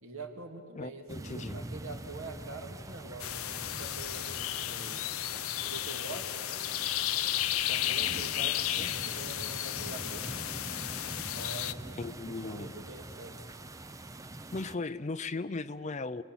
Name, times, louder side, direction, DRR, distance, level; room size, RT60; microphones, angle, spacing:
voice 1, 0.0-5.1 5.6-6.6 7.7-10.2 11.2-13.5, right 2 dB, 70° right, 4 dB, 2.4 m, -45 dB
voice 2, 0.7-1.6 12.0-12.7 14.5-16.2, left 3 dB, 30° left, 14 dB, 0.5 m, -37 dB
sound 1, 1.1-14.8, right 2 dB, 15° right, 0.5 m, -44 dB
sound 2, 3.2-11.7, left 13 dB, 75° left, 0.6 m, -33 dB
29.0 x 19.5 x 7.4 m, 2.4 s
head